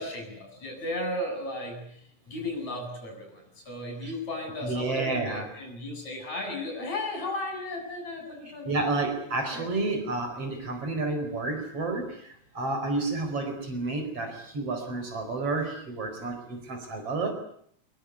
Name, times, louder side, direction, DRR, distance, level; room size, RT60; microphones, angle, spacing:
voice 1, 0.0-1.8 2.3-8.7 9.5-9.7, left 1 dB, 65° left, 3 dB, 8.8 m, -35 dB
voice 2, 4.6-5.5 8.4-12.3 12.5-17.3, right 3 dB, 50° right, 6 dB, 5.7 m, -30 dB
24.0 x 21.5 x 9.6 m, 0.67 s
omnidirectional pair, 3.4 m